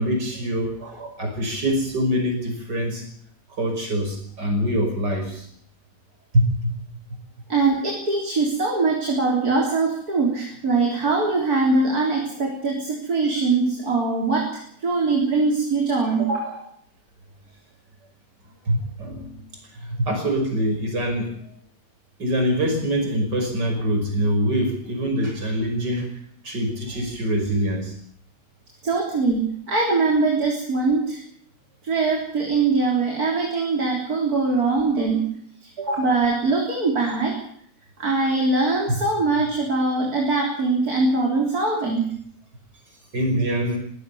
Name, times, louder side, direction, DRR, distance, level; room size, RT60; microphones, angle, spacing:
voice 1, 0.0-3.1 3.5-5.5 6.3-6.7 13.3-13.4 18.6-19.4 19.7-21.4 22.2-26.1 26.4-27.9 43.1-43.8, equal, 90° right, 4 dB, 6.5 m, -24 dB
voice 2, 7.5-16.6 28.8-31.2 31.8-35.3 35.6-37.4 38.0-42.1, right 3 dB, 60° right, 0 dB, 4.2 m, -22 dB
22.0 x 16.5 x 7.1 m, 0.63 s
omnidirectional pair, 1.8 m